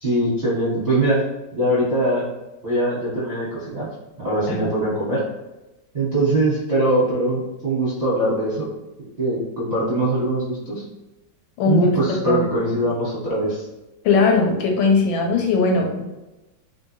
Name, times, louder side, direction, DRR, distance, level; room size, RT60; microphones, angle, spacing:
voice 1, 0.0-1.2 1.5-2.3 2.6-3.9 4.2-5.2 5.9-8.7 9.2-10.8 11.7-13.6, right 1 dB, 45° right, -9 dB, 0.5 m, -22 dB
voice 2, 14.0-16.0, left 3 dB, 85° left, 2 dB, 1.3 m, -19 dB
3.2 x 2.6 x 2.8 m, 1.0 s
omnidirectional pair, 2.1 m